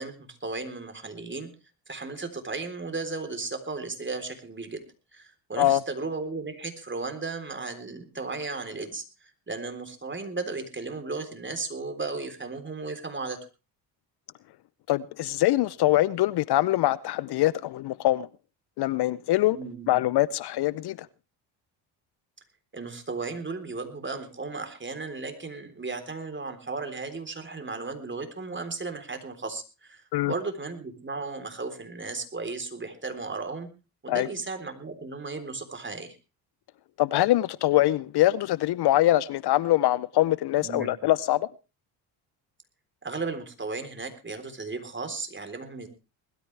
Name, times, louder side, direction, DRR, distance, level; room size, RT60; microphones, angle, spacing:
voice 1, 0.0-1.5 1.9-4.9 5.1-13.4 19.5-19.9 22.7-33.7 34.0-36.2 40.6-40.9 43.0-45.9, right 3 dB, 25° right, 3.8 m, -35 dB
voice 2, 14.9-18.3 18.8-19.6 19.9-21.1 30.1-30.3 34.1-34.3 37.0-41.5, left 15 dB, 55° left, 0.6 m, -23 dB
20.5 x 13.0 x 3.3 m
supercardioid pair, 65°, 47 cm